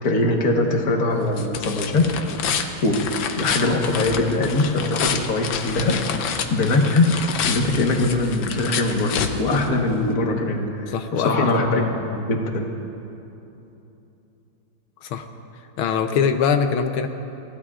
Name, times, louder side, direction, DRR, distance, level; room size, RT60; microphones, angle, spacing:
voice 1, 0.0-2.1 2.8-3.0 3.3-12.7, left 2 dB, 50° left, 2 dB, 1.7 m, -22 dB
sound 1, 0.7-10.1, left 7 dB, 70° left, 1.5 m, -29 dB
voice 2, 10.9-11.9 15.0-15.2 15.8-17.1, left 6 dB, 90° left, 6 dB, 1.6 m, -23 dB
28.5 x 15.5 x 2.4 m, 2.9 s
omnidirectional pair, 2.3 m